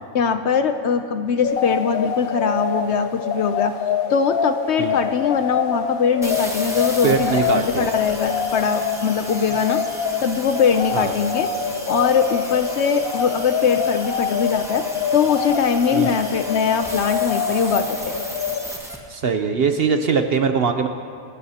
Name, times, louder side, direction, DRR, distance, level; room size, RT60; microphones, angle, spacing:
voice 1, 0.1-3.7 4.1-9.8 10.2-11.5 11.8-14.9 15.1-18.2, left 6 dB, 60° left, 8 dB, 0.8 m, -21 dB
sound 1, 1.4-18.7, left 7 dB, 90° left, 1.2 m, -26 dB
sound 2, 6.2-19.0, equal, ahead, 1.4 m, -35 dB
voice 2, 7.0-7.9 10.9-11.1 15.9-16.1 19.1-20.9, right 5 dB, 55° right, 7 dB, 0.8 m, -21 dB
28.5 x 12.5 x 2.8 m, 2.3 s
omnidirectional pair, 1.5 m